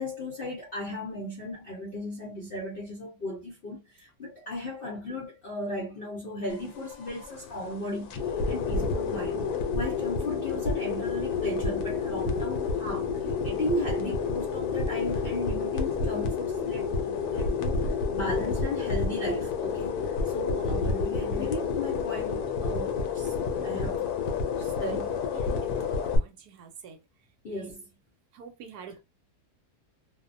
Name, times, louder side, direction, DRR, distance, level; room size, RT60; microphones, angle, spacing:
voice 1, 0.0-8.1 8.5-13.1 13.4-23.3 23.6-24.1 24.6-25.2 27.4-27.9, left 1 dB, 55° left, 0.6 m, -35 dB
sound 1, 6.5-26.2, left 5 dB, 75° left, 1.1 m, -30 dB
voice 2, 25.4-27.0 27.5-27.7 28.3-29.0, right 6 dB, 75° right, 1.1 m, -47 dB
2.7 x 2.0 x 2.5 m
omnidirectional pair, 1.7 m